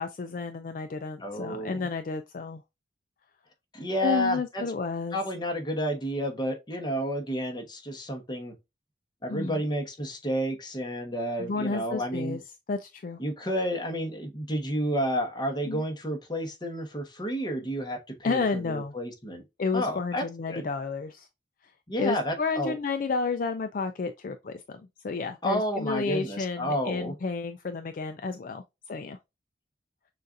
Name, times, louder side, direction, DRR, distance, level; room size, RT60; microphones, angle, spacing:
voice 1, 0.0-2.6 4.0-5.2 9.3-9.6 11.4-12.4 12.7-13.2 15.7-15.8 18.2-18.9 19.6-21.3 22.0-24.6 25.0-28.6 28.9-29.2, left 4 dB, 50° left, 0.4 m, -31 dB
voice 2, 1.2-1.9 3.7-4.6 5.1-8.5 9.2-12.4 13.2-19.4 19.7-20.7 21.9-22.7 25.4-27.1, equal, 25° left, 1.1 m, -31 dB
6.5 x 2.5 x 2.6 m
head